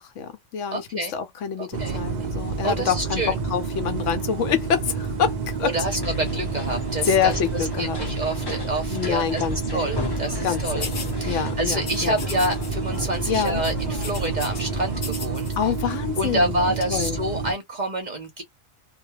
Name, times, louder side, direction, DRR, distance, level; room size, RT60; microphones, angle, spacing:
voice 1, 0.0-5.7 7.0-8.0 8.9-10.1 10.4-12.2 13.3-13.6 15.6-17.2, left 8 dB, 70° left, 0.9 m, -27 dB
voice 2, 0.7-1.1 1.6-2.0 2.6-3.4 5.6-7.4 7.8-10.9 11.2-15.5 16.2-18.4, right 1 dB, 45° right, 0.7 m, -28 dB
sound 1, 1.7-17.5, right 4 dB, 80° right, 0.4 m, -29 dB
sound 2, 5.8-15.0, left 3 dB, 30° left, 0.5 m, -35 dB
sound 3, 10.8-11.1 11.8-12.7 12.9-13.2 13.4-14.6 14.9-15.6, left 5 dB, 45° left, 0.8 m, -36 dB
2.2 x 2.2 x 2.8 m
omnidirectional pair, 1.4 m